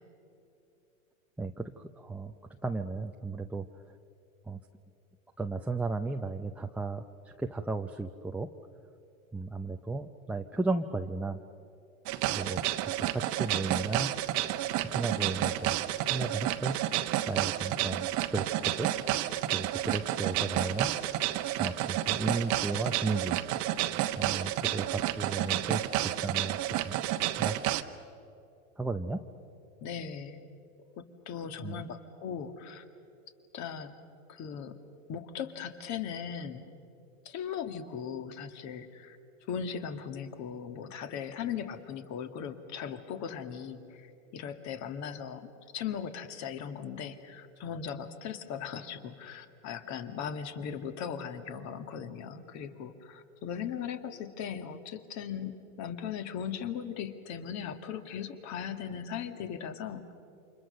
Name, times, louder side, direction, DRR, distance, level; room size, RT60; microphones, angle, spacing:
voice 1, 1.4-2.3 2.6-3.7 4.5-4.6 5.4-8.5 9.3-11.4 12.3-12.6 13.1-14.1 14.9-16.8 17.3-18.9 19.5-21.2 21.6-23.4 24.2-25.8 26.2-26.9 27.4-27.6 28.8-29.2 31.6-31.8, right 3 dB, 5° right, 3 dB, 0.6 m, -34 dB
sound 1, 12.1-27.8, right 14 dB, 40° right, 1.1 m, -30 dB
voice 2, 29.8-30.4 31.0-32.8 33.5-33.9 34.3-34.7 35.1-36.7 37.3-39.2 39.5-60.1, left 7 dB, 40° left, 8 dB, 2.1 m, -38 dB
29.0 x 26.0 x 6.6 m, 2.8 s
hypercardioid pair, 110°, 41 cm